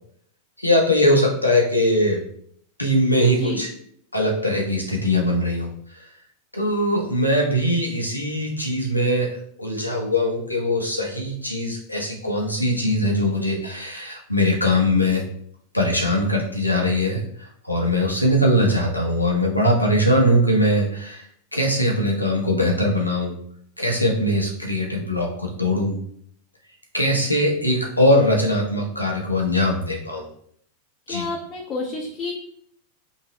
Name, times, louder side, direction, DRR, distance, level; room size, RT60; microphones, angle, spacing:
voice 1, 0.6-2.2 2.8-3.7 4.1-6.1 6.5-15.2 15.7-23.3 23.8-25.9 26.9-30.3 31.1-31.3, left 1 dB, 90° left, -1 dB, 1.0 m, -21 dB
voice 2, 31.1-32.3, left 4 dB, 30° left, -2 dB, 0.9 m, -29 dB
5.4 x 2.9 x 3.2 m, 0.64 s
figure-of-eight pair, 90°, 0 cm